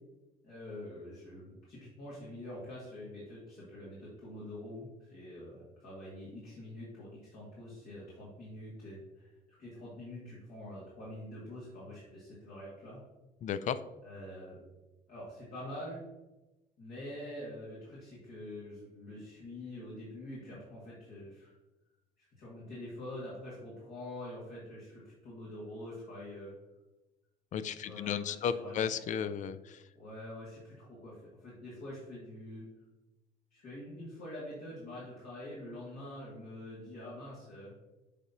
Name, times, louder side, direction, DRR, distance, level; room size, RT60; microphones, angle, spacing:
voice 1, 0.4-13.0 14.0-14.6 15.1-16.0 16.8-21.5 22.2-26.5 27.8-29.3 29.9-32.7 33.5-37.7, left 1 dB, 65° left, -8 dB, 2.1 m, -46 dB
voice 2, 13.4-13.8 27.5-29.8, left 8 dB, 45° left, 13 dB, 0.4 m, -34 dB
8.1 x 4.0 x 2.9 m, 1.1 s
cardioid pair, 110°, 17 cm